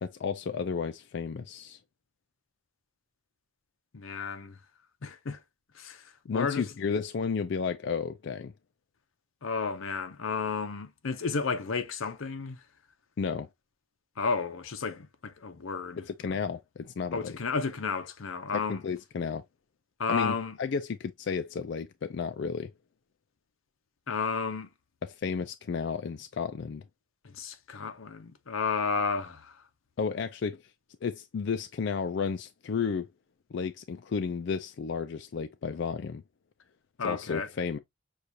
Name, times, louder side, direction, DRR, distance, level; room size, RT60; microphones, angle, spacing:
voice 1, 0.0-1.8 6.3-8.5 13.2-13.5 16.1-17.4 18.5-19.4 20.1-22.7 25.0-26.8 30.0-30.6 31.0-33.1 33.5-36.2 37.0-37.8, left 5 dB, 60° left, 0.4 m, -32 dB
voice 2, 3.9-4.6 5.0-5.4 5.7-6.6 9.4-12.6 14.2-16.4 17.1-18.8 20.0-20.6 24.1-24.7 27.2-29.6 37.0-37.5, left 5 dB, 90° left, 0.7 m, -32 dB
6.5 x 2.4 x 2.7 m
head